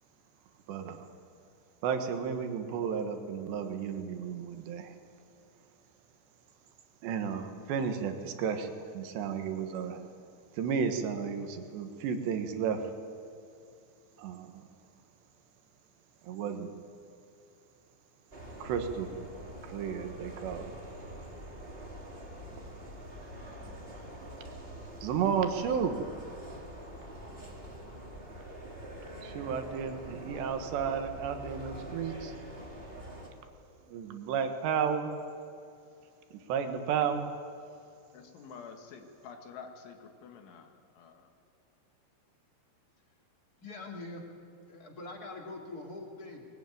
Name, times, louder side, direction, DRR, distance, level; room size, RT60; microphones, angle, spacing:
voice 1, 0.7-1.1 1.8-4.9 7.0-10.0 10.5-12.9 14.2-14.6 16.2-16.7 18.6-19.1 19.6-20.7 25.0-26.0 29.2-32.3 33.9-35.1 36.3-37.3, right 7 dB, 75° right, 6 dB, 3.5 m, -33 dB
sound 1, 18.3-33.3, right 1 dB, 15° right, 2.2 m, -45 dB
voice 2, 38.1-41.3, left 6 dB, 85° left, 5 dB, 4.4 m, -49 dB
voice 3, 43.6-44.2 44.7-46.5, left 2 dB, 25° left, 1 dB, 2.5 m, -43 dB
21.0 x 20.5 x 9.4 m, 2.6 s
omnidirectional pair, 5.3 m